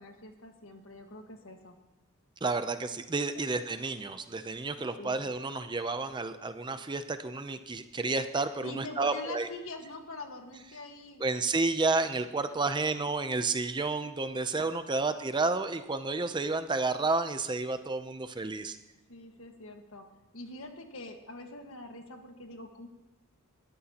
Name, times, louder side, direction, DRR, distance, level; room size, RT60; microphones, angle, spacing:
voice 1, 0.0-1.7 5.0-5.2 8.6-11.2 14.9-15.3 19.1-20.0 20.3-22.9, left 2 dB, 65° left, 4 dB, 1.6 m, -44 dB
voice 2, 2.4-9.5 11.2-18.8, right 3 dB, 20° right, 10 dB, 0.5 m, -31 dB
20.5 x 12.5 x 2.9 m, 1.1 s
head